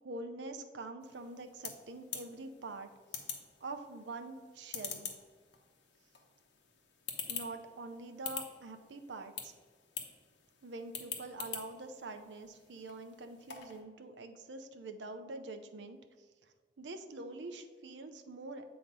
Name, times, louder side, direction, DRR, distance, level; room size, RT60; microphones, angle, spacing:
voice 1, 0.0-2.9 3.2-3.3 3.6-5.1 7.3-9.5 10.6-18.6, right 2 dB, 90° right, 7 dB, 0.6 m, -45 dB
sound 1, 1.0-13.8, left 7 dB, 85° left, 0.9 m, -46 dB
7.9 x 2.9 x 5.2 m, 1.5 s
head